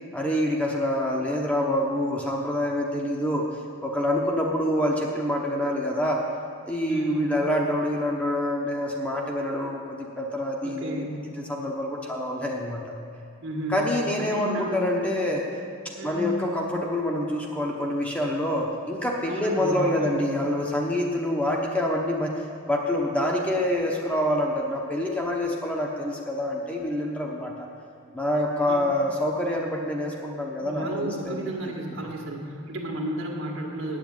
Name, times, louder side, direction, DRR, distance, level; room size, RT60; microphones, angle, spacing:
voice 1, 0.1-3.4 3.8-6.2 6.7-11.1 11.4-12.9 13.7-15.4 16.0-22.3 22.7-27.7 28.1-31.5 32.0-32.1, left 1 dB, 5° left, -1 dB, 1.0 m, -26 dB
voice 2, 6.9-7.3 10.6-11.3 13.4-13.8 14.2-14.8 16.0-16.4 19.3-20.2 28.7-29.0 30.6-34.0, right 1 dB, 70° right, 0 dB, 1.8 m, -33 dB
8.9 x 7.4 x 9.0 m, 2.4 s
head